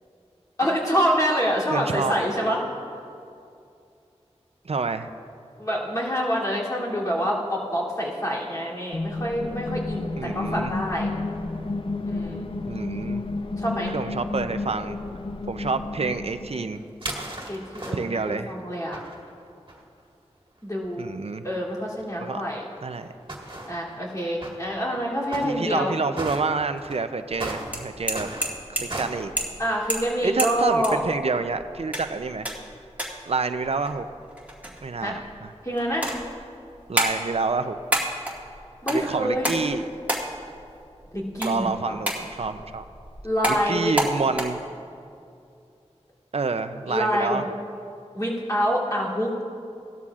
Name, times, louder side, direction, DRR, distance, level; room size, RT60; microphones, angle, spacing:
voice 1, 0.6-2.6 5.6-11.1 12.1-12.5 13.6-13.9 17.5-19.0 20.6-21.2 21.4-22.6 23.7-25.9 29.6-31.0 35.0-35.2 35.6-36.2 38.8-39.5 41.1-42.0 43.2-43.9 46.9-47.4 48.1-49.3, equal, 30° left, -6 dB, 2.9 m, -26 dB
voice 2, 1.7-2.1 4.7-5.1 10.2-10.7 12.7-13.3 13.9-15.0 15.5-16.8 17.9-18.6 21.0-21.4 22.2-22.4 22.8-23.1 25.4-28.3 28.7-29.3 30.2-32.5 33.3-34.1 34.8-35.5 36.9-37.8 38.9-39.8 41.4-42.8 43.5-44.6 46.3-47.5, right 4 dB, 60° right, 10 dB, 0.5 m, -28 dB
sound 1, 8.9-16.7, left 3 dB, 50° left, 0.6 m, -31 dB
sound 2, 16.7-18.4 18.9-19.8 20.6-20.7 20.8-20.9 22.0-22.1 22.8-24.0 24.4-24.6 25.3-25.8 26.1-26.4 26.8-29.3, right 1 dB, 45° right, 1.8 m, -36 dB
sound 3, 27.3-44.4, right 1 dB, 15° right, 1.9 m, -32 dB
17.0 x 12.5 x 2.5 m, 2.5 s
wide cardioid pair, 60°, 12 cm